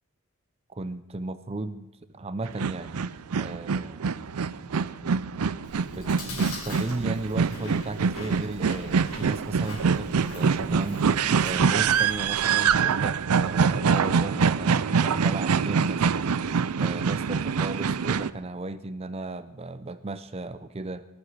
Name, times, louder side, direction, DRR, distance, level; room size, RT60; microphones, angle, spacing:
voice 1, 0.7-3.0 3.3-4.3 5.9-11.1 11.4-16.3 16.8-21.1, right 2 dB, 25° right, 12 dB, 0.5 m, -35 dB
sound 1, 2.4-18.3, right 6 dB, 85° right, 0.5 m, -25 dB
Chewing mastication, 5.6-12.9, left 2 dB, 75° left, 6.2 m, -43 dB
19.0 x 14.0 x 4.8 m, 1.0 s
head